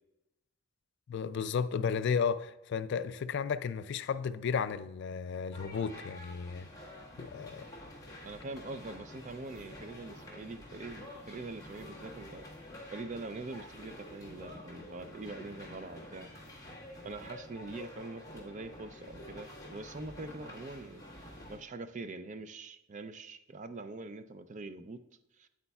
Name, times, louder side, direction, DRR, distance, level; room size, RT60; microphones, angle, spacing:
voice 1, 1.1-6.7 7.2-7.6, left 6 dB, 60° left, 0.3 m, -33 dB
sound 1, 5.5-21.6, left 1 dB, 20° left, 1.6 m, -49 dB
voice 2, 8.2-12.4 12.9-16.3 17.0-25.0 25.4-25.5, right 3 dB, 35° right, 0.4 m, -44 dB
8.7 x 8.2 x 2.3 m
head